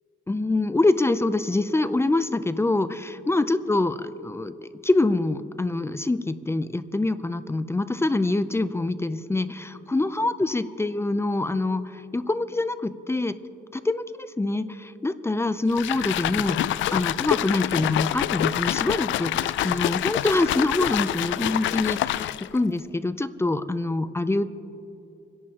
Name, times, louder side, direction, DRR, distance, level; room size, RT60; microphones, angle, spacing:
voice 1, 0.3-13.4 13.7-24.5, left 2 dB, 15° left, 13 dB, 0.5 m, -25 dB
sound 1, 15.7-22.6, left 13 dB, 70° left, 0.4 m, -26 dB
28.0 x 11.0 x 2.9 m, 2.8 s
cardioid pair, 90°, 20 cm